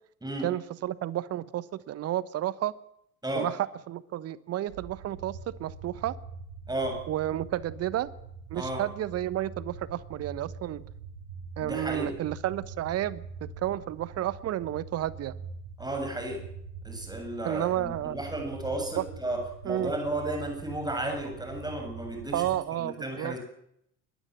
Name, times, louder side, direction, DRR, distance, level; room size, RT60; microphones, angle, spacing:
voice 1, 0.4-2.7 3.3-3.6 3.9-6.2 7.1-8.1 8.5-10.8 11.6-15.3 17.4-18.2 19.0-19.1 19.7-19.9 22.3-23.4, right 13 dB, 35° right, 18 dB, 1.1 m, -31 dB
sound 1, 4.7-22.6, right 5 dB, 70° right, 3.7 m, -44 dB
voice 2, 6.7-7.0 8.5-8.8 11.6-12.1 15.8-16.4 16.8-22.5 22.8-23.4, right 1 dB, 10° right, 4 dB, 7.6 m, -33 dB
22.0 x 20.0 x 7.7 m, 0.74 s
figure-of-eight pair, 60°, 40 cm